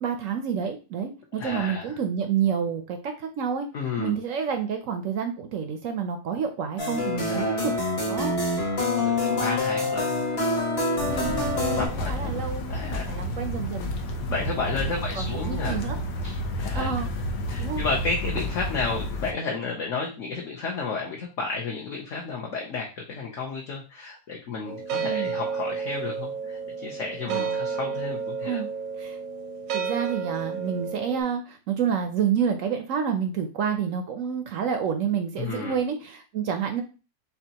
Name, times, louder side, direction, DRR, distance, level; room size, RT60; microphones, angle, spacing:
voice 1, 0.0-3.7 4.0-7.7 8.0-8.4 11.1-11.5 11.9-13.9 14.6-16.0 16.7-17.1 17.6-17.8 25.0-25.4 27.3-27.6 28.4-28.7 29.0-29.2 29.7-36.8, right 7 dB, 65° right, 6 dB, 0.8 m, -29 dB
voice 2, 1.4-2.0 3.7-4.1 7.3-7.7 8.7-10.2 11.7-13.2 14.3-15.9 16.2-16.9 17.5-28.6 35.4-35.8, left 4 dB, 55° left, -1 dB, 0.9 m, -32 dB
sound 1, 6.8-11.9, left 2 dB, 40° left, 1.4 m, -26 dB
sound 2, 11.0-19.3, left 1 dB, 75° left, 1.3 m, -30 dB
sound 3, 24.7-31.2, right 5 dB, 85° right, 1.3 m, -31 dB
6.7 x 2.4 x 2.8 m, 0.33 s
omnidirectional pair, 1.8 m